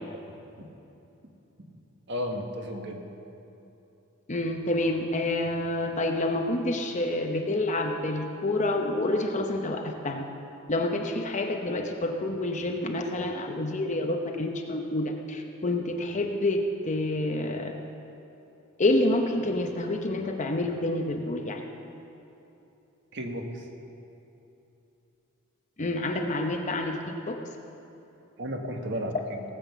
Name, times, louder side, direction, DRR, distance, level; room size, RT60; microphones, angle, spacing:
voice 1, 2.1-3.0 23.1-23.4 28.4-29.4, equal, 55° right, 3 dB, 1.4 m, -33 dB
voice 2, 4.3-10.2 10.7-17.8 18.8-21.6 25.8-27.4, left 2 dB, 35° left, 3 dB, 0.8 m, -28 dB
18.0 x 7.9 x 6.8 m, 2.9 s
head